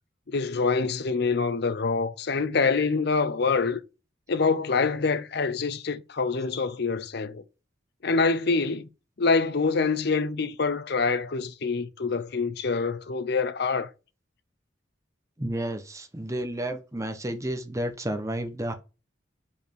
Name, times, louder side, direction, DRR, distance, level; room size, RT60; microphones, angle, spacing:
voice 1, 0.3-3.8 4.3-7.4 8.0-8.9 9.2-13.9, left 4 dB, 60° left, 0.7 m, -25 dB
voice 2, 15.4-18.7, right 1 dB, 15° right, 1.0 m, -31 dB
5.3 x 5.0 x 4.6 m
head